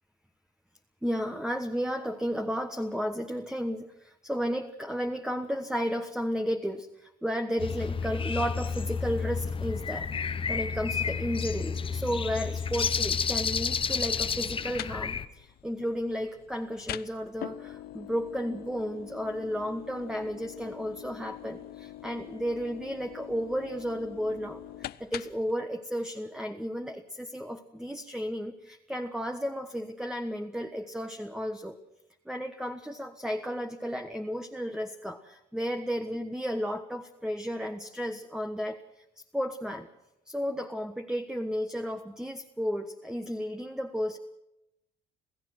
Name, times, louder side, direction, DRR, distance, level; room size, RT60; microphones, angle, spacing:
voice 1, 1.0-31.8 32.2-39.0 39.3-39.9 40.2-44.2, equal, 5° right, 6 dB, 1.4 m, -33 dB
sound 1, 7.6-15.3, left 6 dB, 30° left, 1.1 m, -31 dB
sound 2, 14.4-25.5, left 14 dB, 65° left, 0.7 m, -44 dB
28.5 x 16.0 x 6.2 m, 0.87 s
cardioid pair, 110°, 17 cm